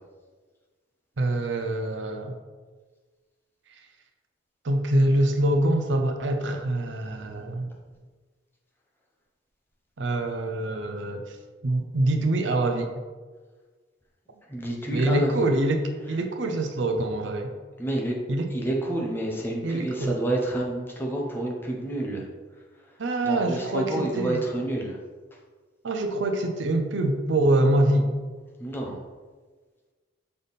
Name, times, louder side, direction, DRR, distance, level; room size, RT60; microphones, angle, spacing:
voice 1, 1.2-2.3 4.6-7.7 10.0-11.4 11.6-12.9 14.9-17.5 18.3-18.5 19.6-20.1 23.0-24.4 25.8-28.1, right 1 dB, 70° right, 5 dB, 0.6 m, -25 dB
voice 2, 14.5-15.5 17.8-18.2 18.5-22.2 23.2-25.0 28.6-29.0, right 1 dB, 10° left, -2 dB, 0.8 m, -29 dB
6.6 x 3.5 x 4.1 m, 1.4 s
head